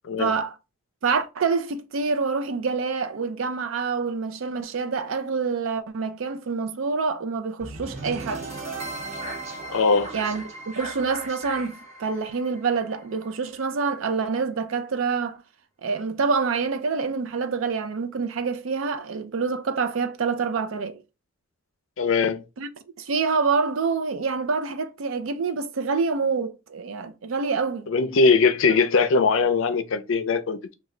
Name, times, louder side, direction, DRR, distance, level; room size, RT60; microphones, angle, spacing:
voice 1, 0.2-0.5 1.0-8.4 10.1-10.4 10.7-15.4 15.8-21.0 22.6-22.7 23.0-27.9, right 5 dB, 70° right, 0.5 m, -26 dB
sound 1, 7.6-13.7, right 2 dB, 35° right, 0.9 m, -37 dB
voice 2, 9.7-10.1 22.0-22.4 27.9-30.7, left 4 dB, 65° left, 0.5 m, -21 dB
3.1 x 2.3 x 3.7 m
head